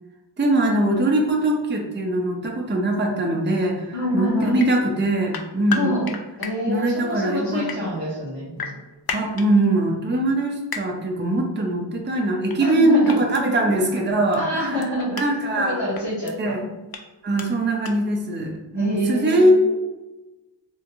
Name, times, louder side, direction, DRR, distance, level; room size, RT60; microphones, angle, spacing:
voice 1, 0.4-6.0 6.7-8.0 9.1-14.8 15.2-15.8 16.4-16.7 17.2-19.5, right 1 dB, 25° right, 1 dB, 0.5 m, -22 dB
voice 2, 3.9-4.6 5.7-8.7 12.6-13.2 14.4-15.2 15.6-16.8 18.7-19.5, left 1 dB, 75° left, -11 dB, 1.2 m, -26 dB
sound 1, 4.6-4.7 5.3-6.5 7.5-7.8 8.6-9.5 10.7-10.8 12.5-12.7 13.0-13.4 14.3-14.4 14.8-15.3 15.9-16.3 16.9-17.0 17.4-17.5 17.8-17.9, left 6 dB, 55° left, 0.5 m, -31 dB
3.5 x 2.4 x 2.9 m, 1.1 s
wide cardioid pair, 45°, 44 cm